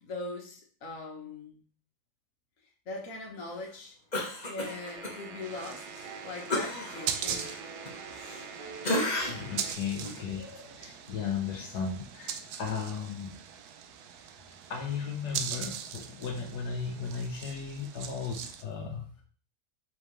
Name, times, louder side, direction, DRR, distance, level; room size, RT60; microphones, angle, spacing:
voice 1, 0.0-1.6 2.8-4.0 4.4-7.6, left 2 dB, 55° left, 0 dB, 1.7 m, -41 dB
Cough, 4.1-5.2 5.5-5.7 6.5-8.5 8.8-9.6 10.0-10.2, left 1 dB, 25° left, 1.5 m, -33 dB
sound 1, 4.6-9.7, right 5 dB, 90° right, 1.5 m, -45 dB
sound 2, 5.4-18.6, right 8 dB, 75° right, 1.1 m, -41 dB
voice 2, 9.2-13.4 14.5-19.2, left 6 dB, 75° left, 1 dB, 1.6 m, -36 dB
6.0 x 5.5 x 3.2 m, 0.43 s
omnidirectional pair, 1.8 m